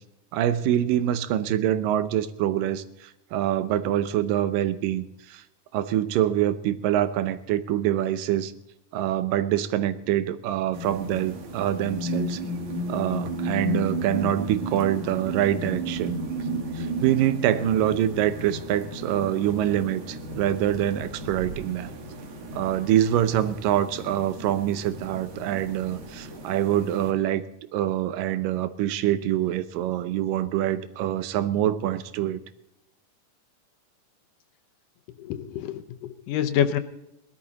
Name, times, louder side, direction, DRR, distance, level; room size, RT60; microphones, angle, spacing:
voice 1, 0.3-5.4 5.7-8.5 8.9-12.4 12.9-16.2 16.8-21.9 22.5-27.4 27.7-32.4, right 11 dB, 90° right, 13 dB, 2.5 m, -25 dB
sound 1, 10.7-27.1, right 1 dB, 65° right, 3.2 m, -34 dB
voice 2, 35.2-36.8, left 9 dB, 80° left, 8 dB, 2.4 m, -27 dB
19.0 x 12.5 x 4.0 m, 0.84 s
omnidirectional pair, 3.8 m